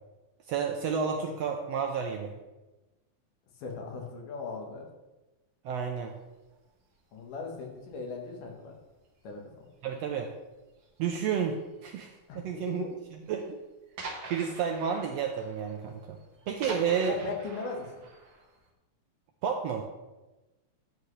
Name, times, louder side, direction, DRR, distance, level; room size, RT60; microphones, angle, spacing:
voice 1, 0.5-2.3 5.6-6.2 9.8-10.3 11.0-12.9 13.3-13.6 14.3-16.2 16.5-17.2 19.4-19.8, right 7 dB, 80° right, 3 dB, 1.5 m, -31 dB
voice 2, 3.5-4.9 7.1-8.7 9.2-9.7 12.3-12.9 16.7-18.0, left 4 dB, 90° left, 1 dB, 2.9 m, -38 dB
sound 1, 6.4-6.5 7.3-7.7 8.0-8.4 8.8-9.1 9.5-9.6 9.9-10.0 10.8-11.2 12.0-12.1 12.5-12.6 13.0-13.1 13.3-13.4 14.0-18.7, right 3 dB, 45° right, 1.7 m, -45 dB
10.5 x 7.7 x 3.2 m, 1.1 s
omnidirectional pair, 3.6 m